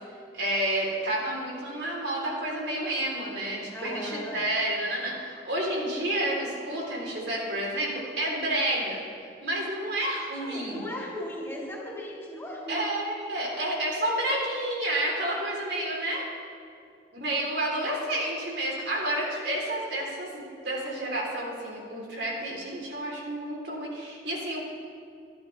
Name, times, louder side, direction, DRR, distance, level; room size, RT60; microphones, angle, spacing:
voice 1, 0.3-9.0 9.4-10.8 12.7-16.2 17.2-20.3 20.6-24.6, right 1 dB, 75° right, -3 dB, 3.6 m, -30 dB
voice 2, 3.7-4.5 10.4-12.9, equal, 15° left, -4 dB, 4.5 m, -37 dB
27.0 x 10.5 x 3.4 m, 2.4 s
head